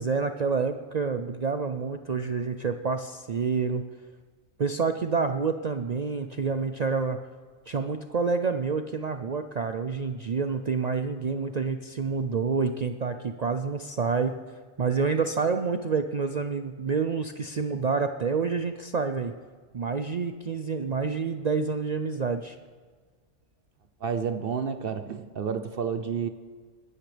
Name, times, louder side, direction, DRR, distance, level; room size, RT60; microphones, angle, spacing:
voice 1, 0.0-3.8 4.6-7.2 7.7-14.4 14.8-19.3 19.7-22.6, right 5 dB, 80° right, 8 dB, 0.3 m, -28 dB
voice 2, 24.0-26.3, right 6 dB, 55° right, 9 dB, 0.7 m, -30 dB
21.0 x 12.5 x 3.4 m, 1.5 s
omnidirectional pair, 1.4 m